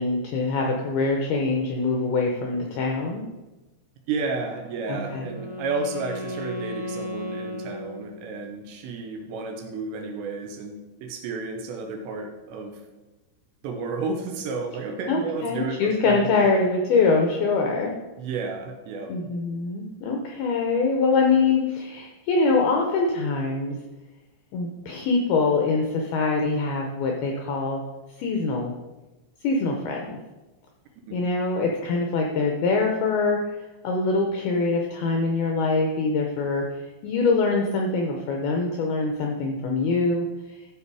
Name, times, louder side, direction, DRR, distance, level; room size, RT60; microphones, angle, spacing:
voice 1, 0.0-3.2 4.9-5.3 15.1-17.9 19.1-23.8 24.5-27.8 28.2-28.7 29.4-30.2 31.1-33.4 33.8-36.6 37.0-40.3, left 3 dB, 80° left, 1 dB, 2.3 m, -24 dB
voice 2, 4.1-12.8 13.6-16.5 18.2-19.1 31.0-31.2, right 4 dB, 75° right, 4 dB, 3.0 m, -32 dB
Wind instrument woodwind instrument, 4.6-8.5, left 1 dB, 45° left, 1.7 m, -35 dB
14.0 x 5.5 x 4.7 m, 1.1 s
omnidirectional pair, 5.6 m